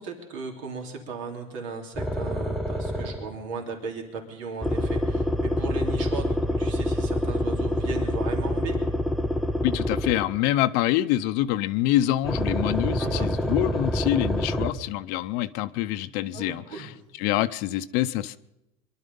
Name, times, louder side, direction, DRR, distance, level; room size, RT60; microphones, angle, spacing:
voice 1, 0.0-8.8 13.0-13.3 16.3-16.9, right 4 dB, 85° right, 3.2 m, -36 dB
sound 1, 1.9-3.4 4.6-10.4 12.2-14.7, left 1 dB, ahead, 0.9 m, -26 dB
voice 2, 9.6-16.9 17.2-18.4, left 14 dB, 70° left, 0.6 m, -26 dB
23.0 x 11.5 x 5.4 m
cardioid pair, 130°, 16 cm